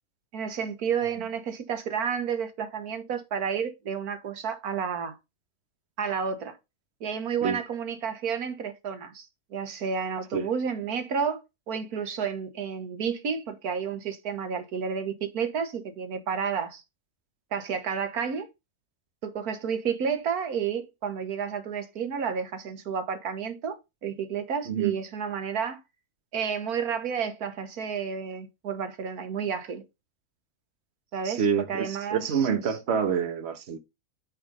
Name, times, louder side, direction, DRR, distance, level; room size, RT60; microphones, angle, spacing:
voice 1, 0.3-5.2 6.0-6.6 7.0-16.8 17.5-18.5 19.2-25.8 26.3-29.8 31.1-32.8, right 7 dB, 90° right, 1.7 m, -31 dB
voice 2, 31.2-33.8, right 7 dB, 50° right, 1.3 m, -27 dB
8.7 x 3.8 x 5.4 m
omnidirectional pair, 1.5 m